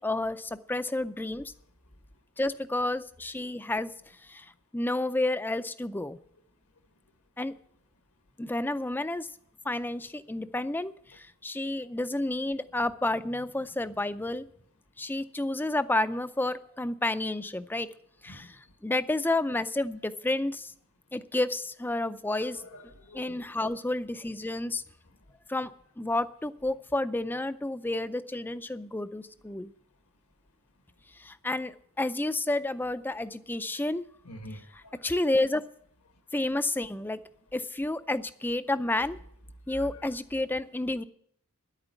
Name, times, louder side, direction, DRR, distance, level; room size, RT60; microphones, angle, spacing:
voice 1, 0.0-1.5 2.4-3.9 4.2-4.5 4.7-6.2 7.4-7.5 8.4-9.3 9.6-14.5 15.0-17.9 18.2-20.7 21.1-22.6 23.1-24.8 25.5-25.7 26.0-29.7 31.2-34.0 34.7-35.7 36.3-37.2 37.5-39.2 39.7-41.0, left 2 dB, 10° left, 12 dB, 0.4 m, -30 dB
voice 2, 22.4-23.4 34.2-34.9 39.8-39.9, equal, 80° left, 7 dB, 1.5 m, -46 dB
10.5 x 8.9 x 8.1 m, 0.67 s
head